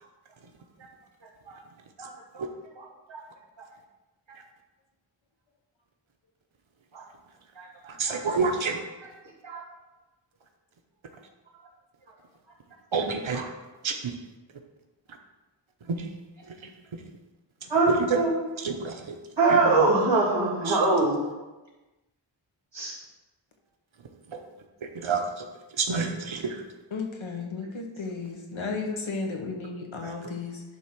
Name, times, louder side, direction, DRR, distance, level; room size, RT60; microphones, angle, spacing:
voice 1, 2.0-2.4 2.8-3.2 6.9-7.0 7.6-8.2 9.4-9.6 13.3-13.4 17.7-18.3 19.4-21.2 22.7-22.9, right 3 dB, 65° right, -4 dB, 3.0 m, -24 dB
voice 2, 7.9-8.8 12.9-13.4 13.8-14.1 15.9-16.1 16.4-17.0 17.6-18.2 18.6-19.2 19.5-19.6 20.6-20.8 24.3-24.4 24.8-25.5 25.8-26.6 30.0-30.1, right 4 dB, 90° right, 3 dB, 1.0 m, -29 dB
voice 3, 26.9-30.6, left 4 dB, 85° left, 2 dB, 1.4 m, -34 dB
11.0 x 3.7 x 6.0 m, 1.1 s
wide cardioid pair, 85°, 46 cm